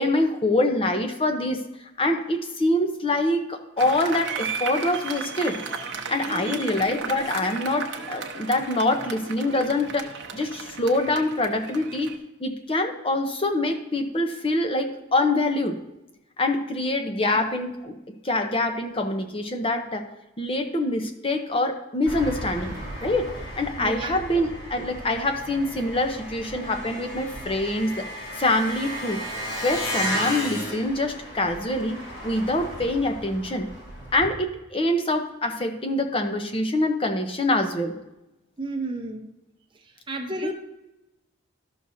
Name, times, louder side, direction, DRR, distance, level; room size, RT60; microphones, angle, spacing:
voice 1, 0.0-1.6 2.0-5.6 6.1-12.1 12.4-15.8 16.4-18.0 18.2-20.1 20.4-23.3 23.6-28.1 28.4-29.2 29.6-33.7 34.1-37.9 40.4-40.5, left 2 dB, 25° left, 5 dB, 0.7 m, -25 dB
Applause, 3.8-12.2, right 5 dB, 65° right, 0.9 m, -35 dB
voice 2, 6.3-6.7 17.3-17.4 23.8-24.2 38.6-39.3 39.8-40.5, right 2 dB, 25° right, 2 dB, 0.9 m, -33 dB
Engine, 22.1-34.3, equal, 55° left, 2.8 m, -34 dB
12.5 x 6.3 x 2.7 m, 0.95 s
head